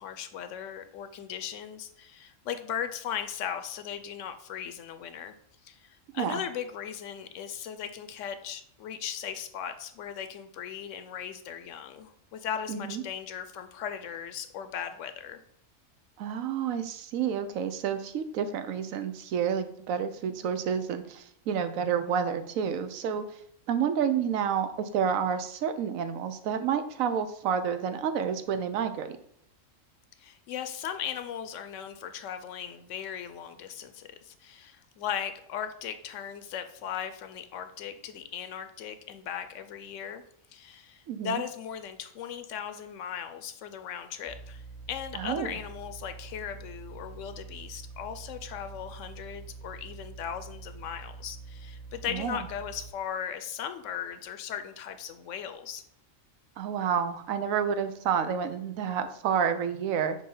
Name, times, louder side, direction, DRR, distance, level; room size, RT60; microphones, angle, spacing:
voice 1, 0.0-5.3 5.6-15.4 30.2-40.2 40.5-44.6 44.9-55.8, left 8 dB, 70° left, 9 dB, 0.9 m, -38 dB
voice 2, 12.7-13.0 16.2-23.2 23.7-29.2 41.1-41.4 45.1-45.5 52.1-52.4 56.6-60.2, right 7 dB, 90° right, 10 dB, 1.1 m, -29 dB
sound 1, 44.3-52.9, right 4 dB, 20° right, 1.2 m, -45 dB
6.3 x 2.8 x 5.4 m, 0.68 s
omnidirectional pair, 1.4 m